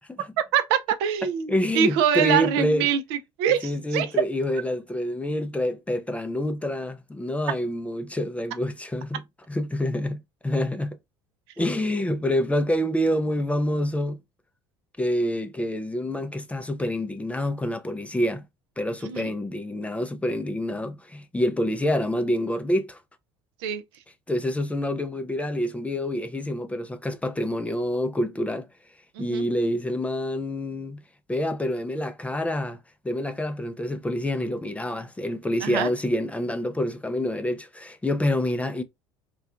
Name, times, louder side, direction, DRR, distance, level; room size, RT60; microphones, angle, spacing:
voice 1, 0.5-4.1 19.0-19.3 23.6-23.8 29.2-29.4 35.6-35.9, right 8 dB, 75° right, 0.4 m, -24 dB
voice 2, 1.5-2.9 3.6-9.2 9.5-11.0 11.6-14.2 15.0-18.4 18.8-23.0 24.3-28.7 29.2-31.0 31.3-32.8 33.0-38.8, left 1 dB, 10° left, 0.3 m, -27 dB
2.6 x 2.2 x 2.3 m
hypercardioid pair, 65°, 13 cm